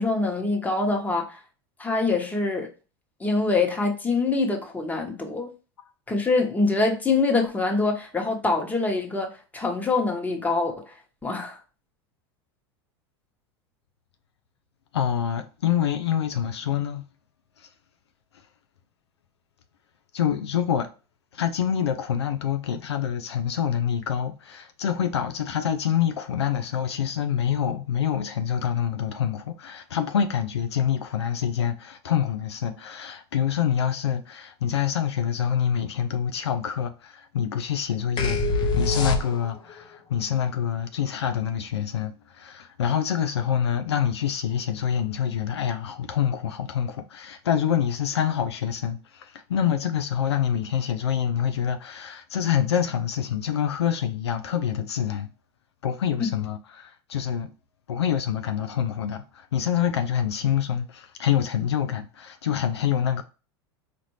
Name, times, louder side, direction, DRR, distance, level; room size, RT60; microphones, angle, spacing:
voice 1, 0.0-1.4 1.8-2.7 3.2-5.5 6.1-10.9 11.2-11.6 56.2-56.3, left 3 dB, 10° left, 1.1 m, -24 dB
voice 2, 14.9-17.1 17.6-17.7 20.1-20.9 21.3-55.3 55.8-57.5 57.9-63.2, left 9 dB, 85° left, 0.4 m, -26 dB
sound 1, 38.2-39.7, left 3 dB, 35° left, 0.7 m, -24 dB
4.2 x 2.6 x 3.1 m
hypercardioid pair, 90°, 14 cm